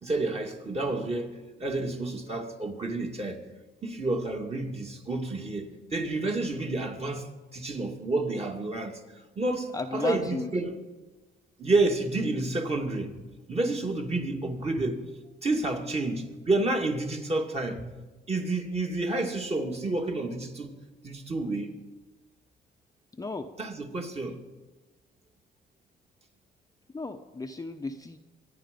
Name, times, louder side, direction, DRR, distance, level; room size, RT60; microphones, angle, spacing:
voice 1, 0.0-3.4 3.8-9.0 9.4-10.8 11.6-15.0 15.4-17.9 18.3-20.8 21.0-21.7 23.6-24.4, right 2 dB, 30° right, 2.3 m, -30 dB
voice 2, 9.7-10.5 23.2-23.5 26.9-28.2, left 3 dB, 20° left, 0.8 m, -34 dB
24.0 x 9.9 x 5.3 m
cardioid pair, 90°, 20 cm